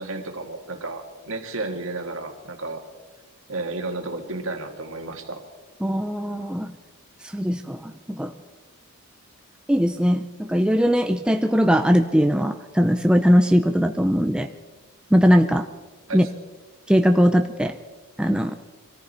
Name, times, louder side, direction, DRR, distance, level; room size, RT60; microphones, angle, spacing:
voice 1, 0.0-2.8 3.5-5.4 16.1-16.3, right 2 dB, 65° right, 4 dB, 1.9 m, -32 dB
voice 2, 5.8-6.7 7.3-8.3 9.7-14.5 15.1-15.7 16.1-16.3 16.9-17.7 18.2-18.5, equal, 5° right, 6 dB, 0.4 m, -20 dB
24.0 x 14.0 x 4.3 m, 1.3 s
head